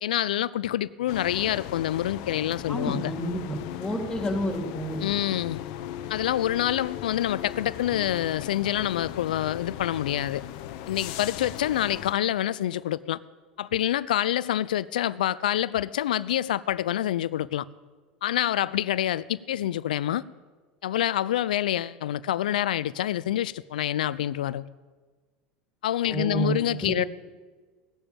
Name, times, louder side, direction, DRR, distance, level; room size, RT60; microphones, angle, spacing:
voice 1, 0.0-3.1 5.0-5.6 6.1-10.4 10.9-13.2 13.6-17.7 18.2-20.2 20.8-24.7 25.8-27.0, left 12 dB, 90° left, 0.5 m, -27 dB
sound 1, 1.1-12.1, left 12 dB, 70° left, 0.8 m, -38 dB
voice 2, 2.7-3.4 3.8-5.0 26.1-26.5 26.8-27.1, right 1 dB, 15° left, 3.2 m, -29 dB
17.5 x 7.0 x 8.8 m
hypercardioid pair, 95°, 4 cm